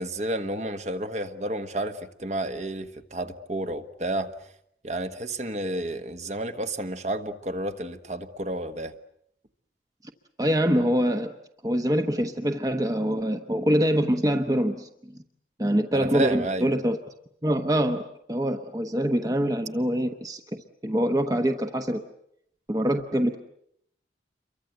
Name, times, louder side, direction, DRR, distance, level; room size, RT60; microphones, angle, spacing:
voice 1, 0.0-4.3 4.8-8.9 15.9-16.7, right 1 dB, 40° right, 8 dB, 1.4 m, -31 dB
voice 2, 10.4-11.3 11.6-15.2 15.6-17.0 17.4-22.0 22.7-23.4, equal, 20° right, 6 dB, 1.0 m, -25 dB
28.5 x 23.5 x 7.9 m, 0.74 s
head